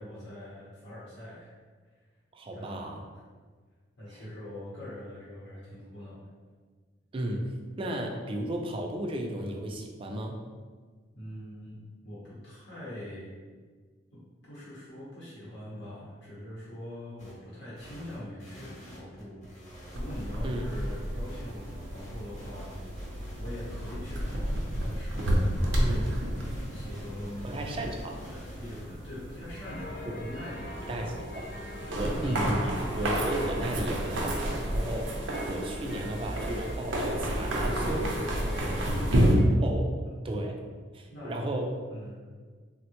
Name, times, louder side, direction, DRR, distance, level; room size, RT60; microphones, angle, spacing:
voice 1, 0.0-1.5 2.5-2.9 4.0-6.3 11.1-13.3 14.1-19.4 19.9-22.8 23.4-26.1 26.5-27.6 28.2-31.3 36.0-36.2 38.5-38.8 40.0-40.1 41.1-41.4 41.9-42.2, left 1 dB, 70° left, -9 dB, 0.8 m, -43 dB
voice 2, 2.3-3.0 4.1-4.2 7.1-7.5 7.8-10.3 20.4-20.7 25.8-26.1 27.4-28.2 30.0-30.1 30.8-31.5 31.9-38.2 39.6-39.9 40.2-40.6 40.9-41.7, right 1 dB, 30° right, 2 dB, 0.3 m, -34 dB
sound 1, 17.2-17.3 17.8-28.8, equal, 40° left, 0.9 m, -48 dB
sound 2, 19.9-39.3, right 1 dB, 85° right, 0.5 m, -31 dB
sound 3, 29.6-39.4, left 1 dB, 55° left, 0.4 m, -44 dB
3.5 x 2.1 x 2.8 m, 1.5 s
head